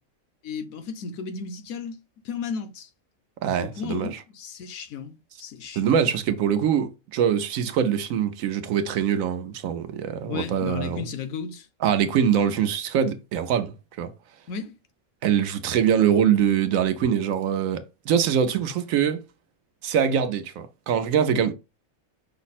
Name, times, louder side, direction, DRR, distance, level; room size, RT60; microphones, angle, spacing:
voice 1, 0.4-2.0 2.2-2.9 3.6-5.9 10.2-11.7 14.5-14.7, left 6 dB, 85° left, 1.1 m, -34 dB
voice 2, 3.4-4.1 5.8-11.1 11.8-14.1 15.2-19.2 19.8-21.5, right 8 dB, 80° right, 1.0 m, -23 dB
5.6 x 2.0 x 4.1 m
omnidirectional pair, 1.4 m